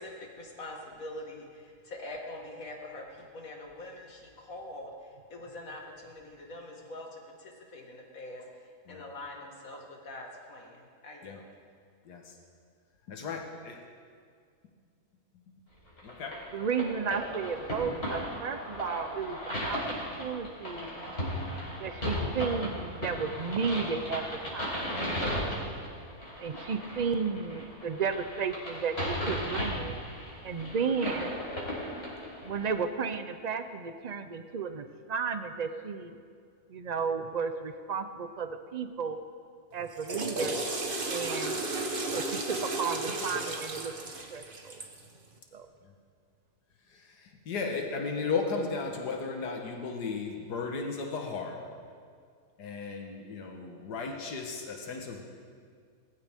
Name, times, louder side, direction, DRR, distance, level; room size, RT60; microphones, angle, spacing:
voice 1, 0.0-4.9 5.3-8.5 8.9-11.4, left 1 dB, 60° left, 0 dB, 2.4 m, -44 dB
voice 2, 12.1-12.4 13.1-13.8 16.0-16.5 45.8-45.9 46.9-51.6 52.6-55.2, left 4 dB, 85° left, 2 dB, 1.9 m, -35 dB
sound 1, 16.0-32.7, equal, 40° left, 4.7 m, -36 dB
voice 3, 16.5-19.8 20.2-20.9 21.8-24.2 24.5-24.9 26.4-30.0 30.4-31.4 32.4-36.2 36.7-39.2 39.7-40.6 41.1-41.7 42.1-43.9 44.3-44.8 45.5-45.7, right 5 dB, 65° right, 9 dB, 0.4 m, -33 dB
Water / Toilet flush, 39.8-45.0, right 2 dB, 35° right, 1.3 m, -34 dB
21.0 x 15.0 x 3.6 m, 2.1 s
omnidirectional pair, 1.7 m